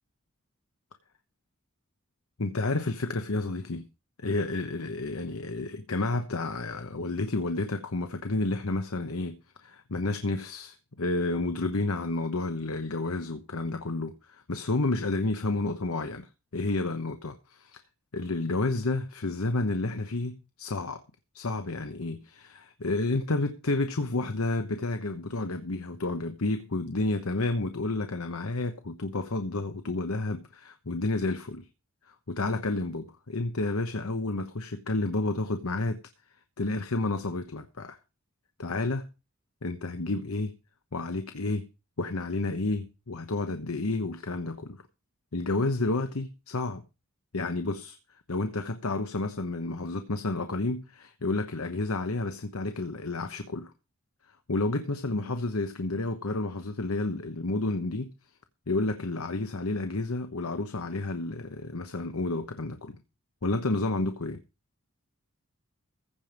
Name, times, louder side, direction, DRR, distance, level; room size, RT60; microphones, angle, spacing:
voice 1, 2.4-3.9 4.2-17.8 18.1-21.0 21.3-31.6 32.1-36.0 36.6-38.0 38.6-39.1 39.6-40.5 40.9-41.7 42.0-44.8 45.3-46.8 47.3-48.0 48.3-53.7 54.5-58.1 58.7-63.0 63.4-64.4, left 2 dB, 90° left, 1.1 m, -30 dB
15.5 x 5.2 x 7.4 m
head